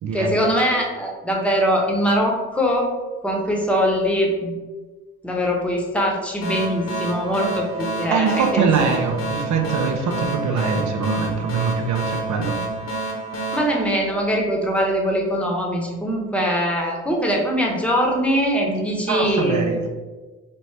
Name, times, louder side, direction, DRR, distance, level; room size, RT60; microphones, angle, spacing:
voice 1, 0.1-2.9 3.2-4.5 5.2-8.7 13.5-19.8, equal, 5° left, -1 dB, 1.1 m, -22 dB
sound 1, 6.4-14.7, right 2 dB, 50° left, 1.1 m, -29 dB
voice 2, 8.1-12.5 19.1-19.9, right 5 dB, 60° right, 4 dB, 0.8 m, -23 dB
4.4 x 2.7 x 3.3 m, 1.3 s
supercardioid pair, 60°, 33 cm